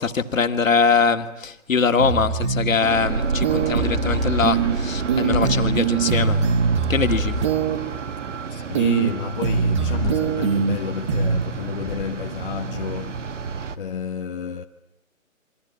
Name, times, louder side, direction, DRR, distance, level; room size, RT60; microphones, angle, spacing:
voice 1, 0.0-6.5 6.9-7.4, left 5 dB, 70° left, 2.3 m, -22 dB
sound 1, 2.0-2.8 3.4-4.8 5.1-7.8 8.7-9.1 9.4-10.8 11.1-11.4, right 5 dB, 20° right, 1.2 m, -22 dB
sound 2, 2.8-13.8, right 5 dB, 60° right, 1.9 m, -30 dB
sound 3, 5.0-6.5 6.8-7.6 9.7-11.0 11.7-12.5, left 5 dB, 5° left, 1.0 m, -35 dB
voice 2, 8.5-13.2 13.8-14.6, left 7 dB, 40° left, 1.2 m, -30 dB
28.0 x 24.0 x 8.5 m
hypercardioid pair, 155°, 41 cm